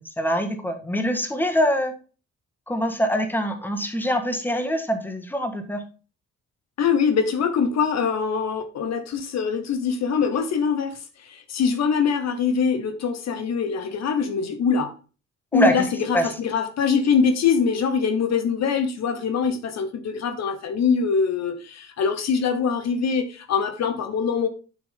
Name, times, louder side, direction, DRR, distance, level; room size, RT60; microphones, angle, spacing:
voice 1, 0.0-1.9 2.7-5.8 15.5-15.7 16.1-16.3, equal, 5° left, 1.5 m, -24 dB
voice 2, 6.8-14.9 15.5-24.5, left 6 dB, 60° left, 1.0 m, -23 dB
7.2 x 6.3 x 3.6 m
cardioid pair, 90°, 30 cm